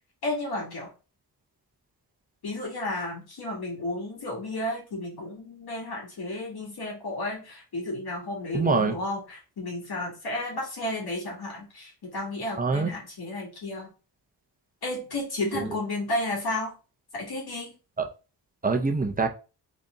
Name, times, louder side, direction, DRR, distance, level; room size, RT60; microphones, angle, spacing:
voice 1, 0.2-0.9 2.4-13.9 14.8-16.7 17.1-17.7, left 1 dB, 60° left, -2 dB, 2.3 m, -32 dB
voice 2, 8.5-8.9 12.6-12.9 15.5-15.7 18.0-18.1 18.6-19.3, right 4 dB, 20° right, 4 dB, 0.6 m, -24 dB
4.0 x 3.4 x 3.8 m, 0.33 s
wide cardioid pair, 145°, 43 cm